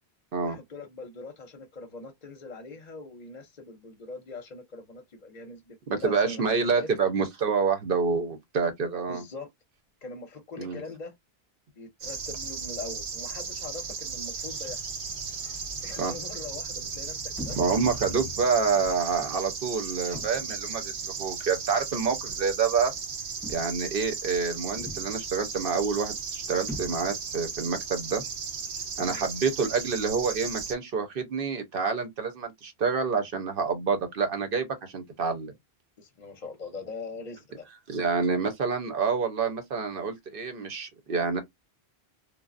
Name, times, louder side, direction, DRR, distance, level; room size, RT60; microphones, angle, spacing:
voice 1, 0.4-6.9 9.1-9.5 10.0-11.2 11.8-14.9 15.8-17.6 29.0-29.2 36.0-37.7, left 3 dB, 50° left, 0.6 m, -42 dB
voice 2, 6.0-9.2 10.6-10.8 16.0-16.1 17.5-22.9 23.5-28.2 29.0-35.5 37.9-41.4, right 5 dB, 60° right, 0.9 m, -27 dB
sound 1, 12.0-30.7, right 5 dB, 90° right, 1.0 m, -36 dB
Sliding door, 14.3-19.0, left 2 dB, 35° right, 0.7 m, -45 dB
sound 2, 17.4-17.8 18.7-19.1 20.1-20.6 21.7-21.9 23.4-23.9 24.8-25.3 26.7-27.4, equal, 5° left, 0.5 m, -41 dB
3.3 x 2.0 x 2.4 m
omnidirectional pair, 1.1 m